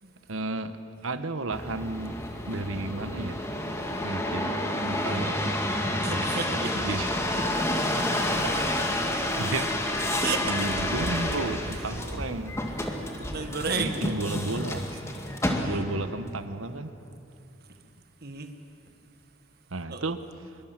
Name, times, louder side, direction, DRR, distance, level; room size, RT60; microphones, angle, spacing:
voice 1, 0.3-2.2 2.5-3.5 4.0-5.6 6.8-7.1 9.4-9.8 10.4-12.6 13.7-14.8 15.7-16.9 19.7-20.6, right 2 dB, 85° right, 11 dB, 1.2 m, -33 dB
sound 1, 1.5-16.1 16.7-17.2, left 1 dB, 15° left, 2.0 m, -29 dB
voice 2, 5.1-5.5 6.0-7.0 7.4-8.8 10.2-10.7 11.7-12.0 13.2-14.2 15.5-15.9 18.2-18.5 19.9-20.1, right 4 dB, 50° right, 7 dB, 1.7 m, -35 dB
26.0 x 23.0 x 7.6 m, 2.7 s
head